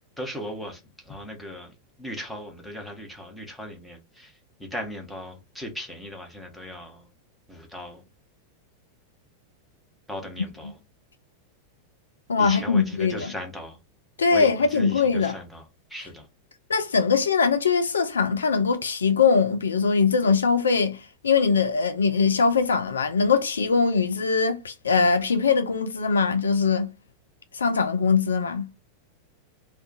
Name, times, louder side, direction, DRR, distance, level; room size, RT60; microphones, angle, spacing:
voice 1, 0.2-7.1 7.5-8.0 10.1-10.8 12.4-13.8 14.3-15.6 15.9-16.3, equal, 5° left, 0.9 m, -38 dB
voice 2, 12.3-13.3 14.2-15.3 16.7-26.9 27.5-28.7, left 5 dB, 70° left, 0.3 m, -22 dB
2.4 x 2.2 x 3.9 m
figure-of-eight pair, 90°, 0 cm